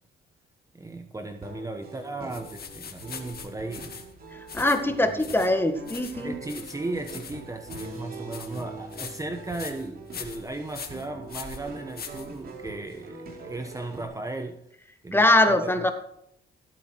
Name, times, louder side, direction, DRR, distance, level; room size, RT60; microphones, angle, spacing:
voice 1, 0.7-3.9 4.9-5.2 6.2-14.6 15.0-15.7, right 2 dB, 15° right, 6 dB, 1.1 m, -36 dB
sound 1, 1.4-14.0, right 3 dB, 50° right, 3.4 m, -43 dB
sound 2, 2.3-12.8, left 6 dB, 50° left, 2.1 m, -42 dB
voice 2, 4.5-6.4 15.1-15.9, left 1 dB, 10° left, 7 dB, 1.8 m, -22 dB
16.0 x 8.5 x 4.7 m, 0.72 s
cardioid pair, 90°, 20 cm